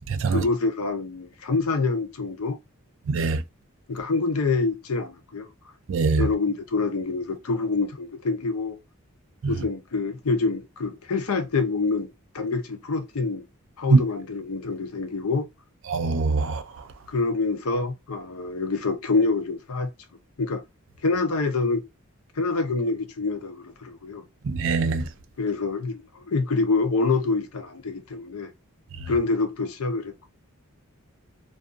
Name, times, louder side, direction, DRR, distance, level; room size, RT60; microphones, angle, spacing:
voice 1, 0.3-2.6 3.9-5.5 6.2-8.8 9.5-13.4 13.8-15.5 17.1-19.9 20.4-20.6 21.0-21.9 22.4-24.2 25.4-28.5 29.1-30.3, left 3 dB, 85° left, 0.6 m, -26 dB
voice 2, 3.1-3.4 5.9-6.2 15.9-16.6 24.5-25.0, right 4 dB, 60° right, 0.4 m, -23 dB
2.5 x 2.4 x 2.5 m
head